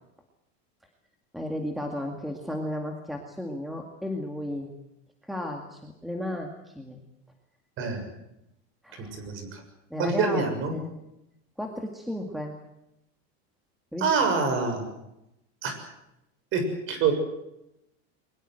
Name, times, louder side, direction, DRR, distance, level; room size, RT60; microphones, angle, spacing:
voice 1, 1.3-4.7 5.3-7.0 8.8-9.3 9.9-10.4 10.7-11.0 11.6-12.6 13.9-14.1, left 1 dB, ahead, 2 dB, 2.1 m, -34 dB
voice 2, 8.9-9.6 10.0-10.8 14.0-14.9 15.6-15.7 16.5-17.1, right 5 dB, 35° right, 7 dB, 6.9 m, -26 dB
23.0 x 21.0 x 7.9 m, 0.85 s
supercardioid pair, 165°, 34 cm